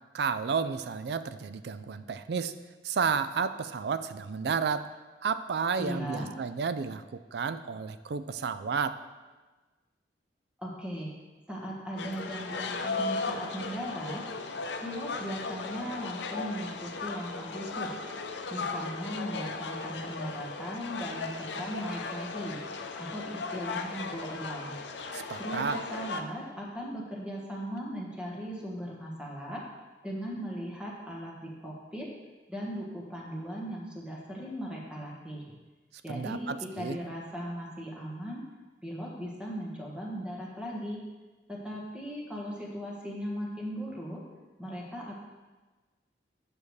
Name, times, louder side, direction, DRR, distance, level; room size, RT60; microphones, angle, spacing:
voice 1, 0.1-2.5 2.8-4.9 5.2-9.0 25.1-25.8 36.1-37.0, right 5 dB, 65° right, 12 dB, 0.4 m, -31 dB
voice 2, 5.8-6.3 10.6-11.1 11.5-14.2 14.8-18.0 18.5-22.6 23.0-24.7 25.4-29.6 30.0-32.1 32.5-35.4 36.0-38.4 38.8-41.0 41.5-44.2 44.6-45.2, equal, 5° right, -3 dB, 1.4 m, -38 dB
sound 1, 12.0-26.2, left 4 dB, 80° left, 0.6 m, -37 dB
8.6 x 6.8 x 3.2 m, 1.3 s
head